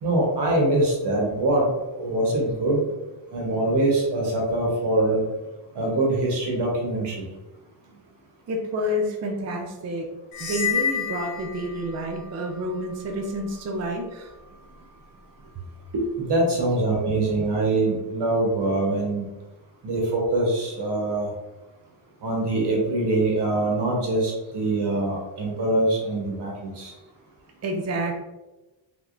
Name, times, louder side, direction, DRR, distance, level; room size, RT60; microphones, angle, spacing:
voice 1, 0.0-2.8 3.3-5.2 5.7-7.2 15.9-19.3 19.8-21.3 22.2-26.9, right 2 dB, 60° right, -2 dB, 1.0 m, -23 dB
voice 2, 8.5-10.1 10.4-14.3 27.6-28.2, equal, 35° right, 2 dB, 0.5 m, -29 dB
sound 1, 10.3-12.2, left 8 dB, 80° left, 0.9 m, -28 dB
3.4 x 3.1 x 2.5 m, 1.1 s
cardioid pair, 115°, 47 cm